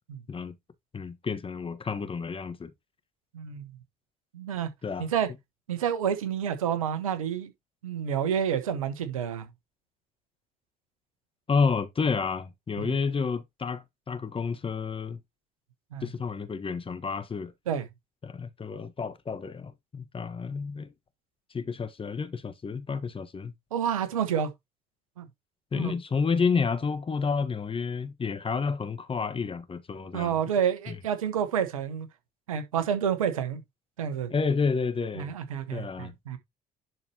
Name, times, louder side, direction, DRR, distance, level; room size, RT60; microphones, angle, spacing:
voice 1, 0.9-2.7 4.8-5.1 11.5-15.2 16.0-17.5 18.2-20.9 21.5-23.5 25.7-30.4 30.9-31.0 34.3-35.3 35.7-36.1, left 5 dB, 30° left, 1.5 m, -30 dB
voice 2, 3.3-3.7 4.3-4.7 5.0-5.3 5.7-7.5 7.8-9.4 12.8-12.9 15.9-16.1 17.7-17.8 23.7-24.5 25.2-25.3 25.7-25.9 30.1-32.1 32.5-33.6 34.0-34.3 35.2-36.4, right 8 dB, 85° right, 1.3 m, -29 dB
11.0 x 4.5 x 3.0 m
hypercardioid pair, 55°, 17 cm